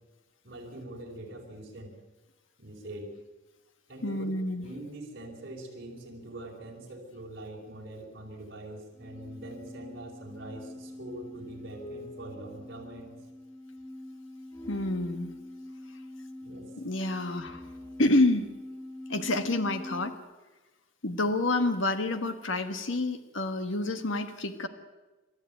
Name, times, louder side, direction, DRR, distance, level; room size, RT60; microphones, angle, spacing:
voice 1, 0.4-1.9 2.6-3.1 3.9-4.3 4.6-13.1 16.4-16.7, right 1 dB, 55° right, -3 dB, 5.1 m, -43 dB
voice 2, 4.0-4.6 14.7-15.3 16.8-17.6 18.0-18.5 19.1-20.1 21.0-24.7, left 2 dB, 90° left, 8 dB, 1.5 m, -28 dB
sound 1, 8.9-20.1, left 1 dB, 10° left, 2.1 m, -44 dB
29.5 x 13.0 x 9.3 m, 1.2 s
head